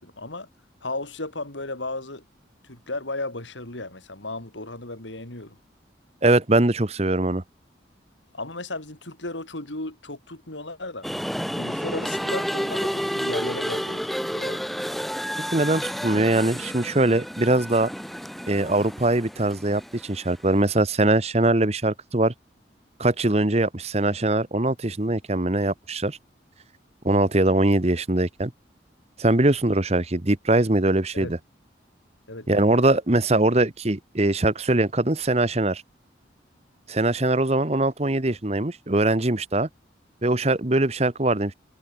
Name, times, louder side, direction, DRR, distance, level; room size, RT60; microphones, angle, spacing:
voice 1, 0.0-0.5 0.8-2.2 2.6-5.6 8.3-11.1 11.5-14.7 31.1-31.3 32.3-32.9, left 2 dB, 90° left, 4.9 m, -35 dB
voice 2, 6.2-7.4 15.5-17.9 18.5-22.3 23.0-26.2 27.0-28.5 29.2-31.4 32.5-35.8 36.9-39.7 40.2-41.5, right 2 dB, 35° right, 1.2 m, -22 dB
sound 1, 11.0-20.5, equal, ahead, 6.3 m, -30 dB
head